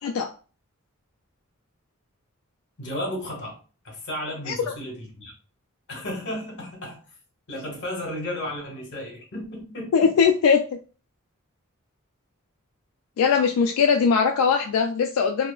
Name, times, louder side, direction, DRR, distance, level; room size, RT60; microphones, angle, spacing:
voice 1, 0.0-0.3 4.5-4.6 9.9-10.6 13.2-15.5, left 6 dB, 90° left, 4 dB, 0.3 m, -20 dB
voice 2, 2.8-3.6 3.8-5.3 5.9-7.0 7.5-10.2, left 1 dB, 55° left, 0 dB, 1.2 m, -33 dB
2.7 x 2.3 x 2.3 m, 0.36 s
head